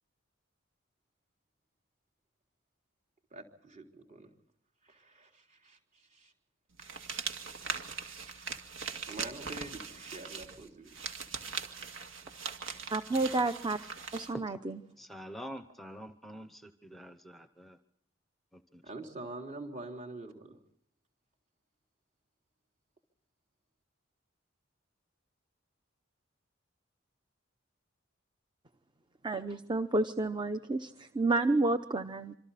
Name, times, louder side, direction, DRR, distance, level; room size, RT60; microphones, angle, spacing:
voice 1, 3.3-4.3 4.8-6.3 8.2-8.4 9.1-11.0 11.7-12.3 18.8-20.6, right 2 dB, 40° right, 2 dB, 3.7 m, -46 dB
sound 1, 6.8-14.3, right 5 dB, 75° right, 2.2 m, -40 dB
voice 2, 12.9-13.8 14.1-14.8 29.2-32.4, right 2 dB, 25° right, 10 dB, 0.8 m, -30 dB
voice 3, 15.0-17.8 18.5-18.8, equal, ahead, 8 dB, 0.9 m, -46 dB
26.5 x 25.5 x 4.2 m, 0.72 s
head